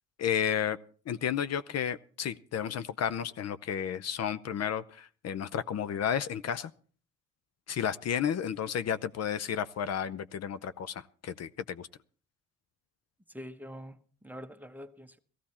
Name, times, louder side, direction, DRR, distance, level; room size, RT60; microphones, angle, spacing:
voice 1, 0.2-0.8 1.1-6.7 7.7-11.9, left 8 dB, 55° left, 0.6 m, -32 dB
voice 2, 13.3-15.2, equal, 5° right, 1.1 m, -45 dB
16.0 x 15.0 x 4.3 m
cardioid pair, 90°, 30 cm